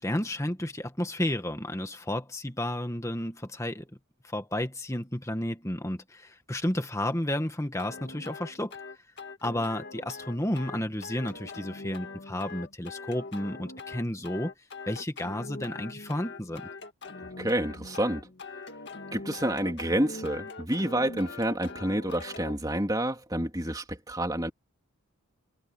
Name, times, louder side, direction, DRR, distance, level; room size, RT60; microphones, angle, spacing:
voice 1, 0.0-3.9 4.2-8.8 9.4-14.5 14.9-16.7, left 1 dB, 15° left, 1.7 m, -32 dB
sound 1, 7.8-22.6, left 3 dB, 55° left, 2.1 m, -42 dB
voice 2, 17.4-18.3 19.1-24.5, right 1 dB, 15° right, 3.0 m, -29 dB
head